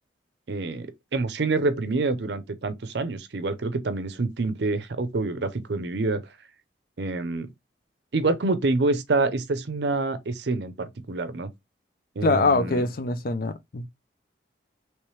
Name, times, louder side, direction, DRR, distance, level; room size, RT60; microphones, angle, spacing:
voice 1, 0.5-6.2 7.0-7.5 8.1-11.5 12.2-12.8, right 3 dB, 65° right, 0.5 m, -27 dB
voice 2, 12.2-13.9, left 3 dB, 50° left, 0.5 m, -23 dB
3.2 x 3.1 x 3.1 m
head